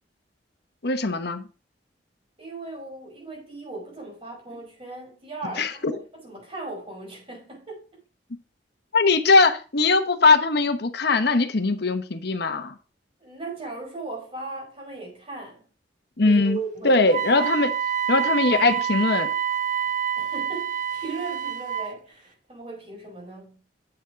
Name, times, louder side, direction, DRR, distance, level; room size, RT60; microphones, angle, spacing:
voice 1, 0.8-1.4 5.6-6.0 8.9-12.7 16.2-16.6 16.8-17.7 18.1-19.3, left 3 dB, 60° left, 1.1 m, -20 dB
voice 2, 2.4-8.0 13.2-15.7 16.2-17.0 20.2-23.6, right 3 dB, 30° right, 5.5 m, -37 dB
Wind instrument woodwind instrument, 17.1-21.9, right 8 dB, 45° right, 0.6 m, -27 dB
8.8 x 7.2 x 5.0 m
head